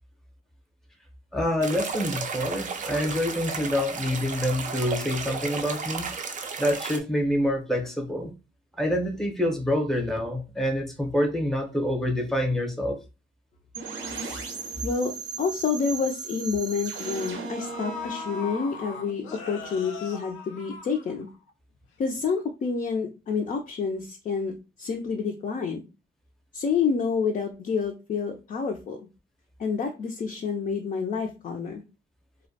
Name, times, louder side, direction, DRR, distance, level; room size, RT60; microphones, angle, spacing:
voice 1, 1.3-6.1 6.6-8.3 8.8-13.0, left 1 dB, ahead, 0.7 m, -26 dB
sound 1, 1.6-7.0, right 5 dB, 40° right, 0.4 m, -33 dB
sound 2, 13.7-19.5, right 4 dB, 80° right, 0.7 m, -37 dB
voice 2, 14.8-21.3 22.0-25.9 26.5-29.1 29.6-31.8, left 5 dB, 40° left, 0.4 m, -28 dB
sound 3, 16.1-16.2 17.1-17.2 17.6-21.5 21.8-21.9, left 4 dB, 90° left, 0.5 m, -39 dB
2.2 x 2.1 x 2.6 m
cardioid pair, 90°, 20 cm